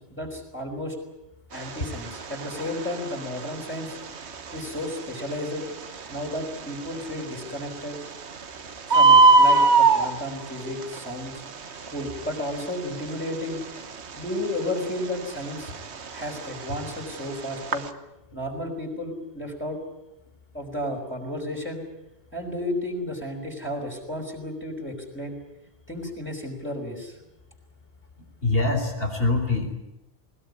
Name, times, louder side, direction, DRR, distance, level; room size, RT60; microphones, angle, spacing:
voice 1, 0.1-1.0 1.5-4.0 4.5-5.7 6.1-8.0 8.9-11.4 11.9-13.6 14.2-15.8 16.1-17.8 18.3-19.8 20.5-21.8 22.3-25.3 25.9-27.1, left 1 dB, 10° left, -1 dB, 4.8 m, -33 dB
Bird, 1.5-17.9, right 3 dB, 70° right, 1.5 m, -24 dB
voice 2, 28.4-29.7, left 3 dB, 55° left, 5 dB, 4.2 m, -24 dB
20.5 x 20.5 x 9.7 m, 0.92 s
omnidirectional pair, 1.2 m